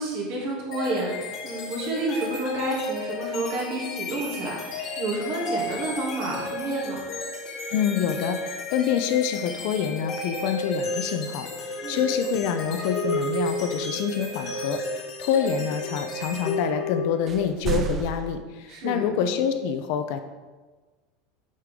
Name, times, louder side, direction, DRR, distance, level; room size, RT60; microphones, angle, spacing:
voice 1, 0.0-7.0 11.8-12.0 18.7-19.1, right 2 dB, 50° right, -3 dB, 2.5 m, -30 dB
sound 1, 0.7-17.4, left 1 dB, 35° left, 1.1 m, -32 dB
voice 2, 7.7-20.2, left 8 dB, 55° left, 8 dB, 0.6 m, -27 dB
sound 2, 17.3-18.4, right 8 dB, 25° right, 0.3 m, -30 dB
6.6 x 6.5 x 3.7 m, 1.3 s
supercardioid pair, 165°, 0 cm